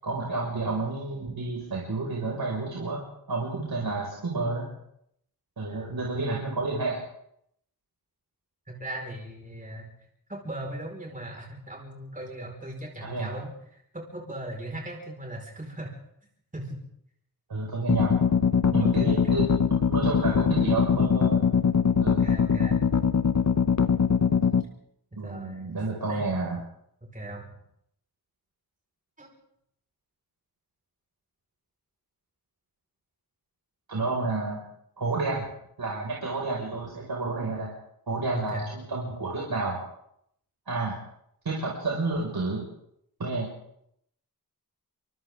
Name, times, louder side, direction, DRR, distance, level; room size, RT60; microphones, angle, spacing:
voice 1, 0.0-4.7 5.6-7.0 13.0-13.4 17.5-18.2 18.7-21.4 22.0-22.3 25.2-26.6 33.9-34.6 35.0-35.5 35.8-37.7 38.1-39.8 40.7-41.0 41.4-42.7 43.2-43.5, right 3 dB, 75° right, -3 dB, 5.7 m, -30 dB
voice 2, 3.7-4.1 5.7-5.9 8.7-9.9 10.3-15.9 16.5-16.8 18.6-19.5 22.0-22.8 25.1-25.8 26.1-26.3 27.0-27.5 29.2-29.3 38.3-38.7, right 1 dB, 20° right, 0 dB, 5.1 m, -39 dB
sound 1, 17.9-24.6, left 6 dB, 45° left, 1.0 m, -22 dB
28.5 x 25.5 x 3.8 m, 0.74 s
wide cardioid pair, 100°, 38 cm